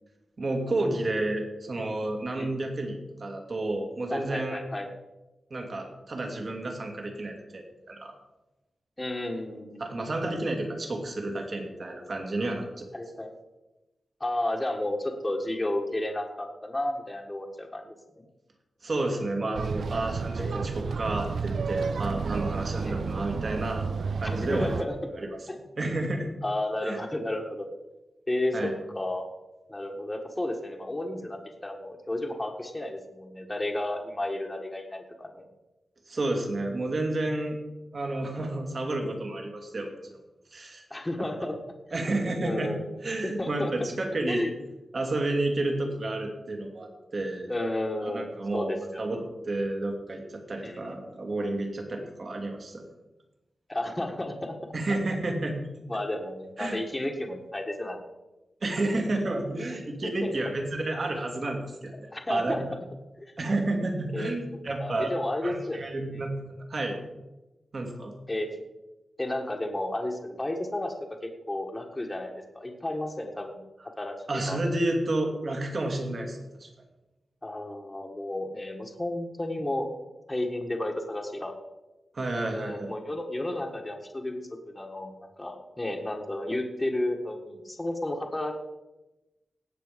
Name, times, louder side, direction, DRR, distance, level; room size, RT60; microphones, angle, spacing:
voice 1, 0.4-4.6 5.5-8.1 9.8-12.8 18.8-23.9 24.2-24.7 25.2-25.4 25.8-26.3 26.8-27.0 28.5-28.7 36.1-37.6 37.9-39.9 40.5-40.8 41.9-42.7 43.0-44.4 44.9-47.5 48.0-49.2 49.5-50.2 50.5-52.8 54.7-55.6 56.6-56.8 58.6-62.6 63.4-65.1 65.4-66.3 66.7-67.0 67.7-68.2 74.3-76.7 82.1-82.9, right 2 dB, 45° right, 2 dB, 2.7 m, -30 dB
voice 2, 4.1-4.9 9.0-10.0 12.9-13.3 14.2-18.0 20.4-21.0 22.8-23.2 24.2-25.0 25.5-25.6 26.4-27.7 28.3-28.7 28.9-29.2 29.7-35.4 40.9-41.6 42.4-42.9 43.2-43.9 44.3-44.5 47.5-49.2 50.6-51.0 53.7-54.5 55.9-58.1 60.0-60.3 62.1-62.6 63.2-63.3 64.1-64.4 64.8-65.8 66.1-66.3 68.3-68.5 69.2-70.9 71.2-73.6 74.0-74.6 77.4-79.9 80.3-81.5 82.6-88.5, left 1 dB, 15° left, 2 dB, 1.5 m, -32 dB
sound 1, 19.5-24.8, right 5 dB, 70° right, 0.5 m, -31 dB
18.0 x 7.5 x 5.2 m, 1.0 s
wide cardioid pair, 140°, 0 cm